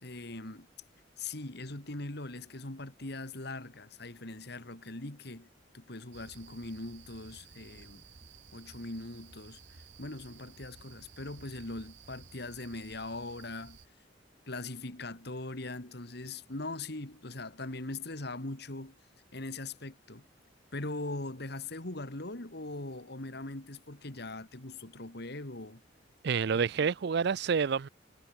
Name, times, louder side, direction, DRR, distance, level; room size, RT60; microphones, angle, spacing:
voice 1, 0.0-0.7 1.2-5.5 5.7-8.0 8.5-13.8 14.5-18.9 19.3-20.2 20.7-25.8 26.5-26.9, left 2 dB, 65° left, 2.7 m, -41 dB
sound 1, 6.1-13.9, right 5 dB, 80° right, 2.2 m, -55 dB
voice 2, 26.2-27.9, right 6 dB, 65° right, 0.5 m, -28 dB
head